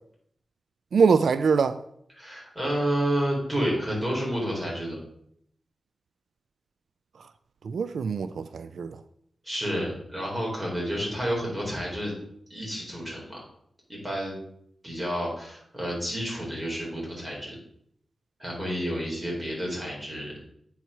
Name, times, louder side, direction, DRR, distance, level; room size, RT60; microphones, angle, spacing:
voice 1, 0.9-1.7 7.7-8.9, right 5 dB, 85° right, 0.3 m, -23 dB
voice 2, 2.1-5.0 9.4-12.1 12.5-13.4 13.9-14.4 14.8-17.6 18.4-20.4, equal, 10° right, 3.7 m, -30 dB
8.2 x 4.6 x 5.6 m
wide cardioid pair, 115°, 0 cm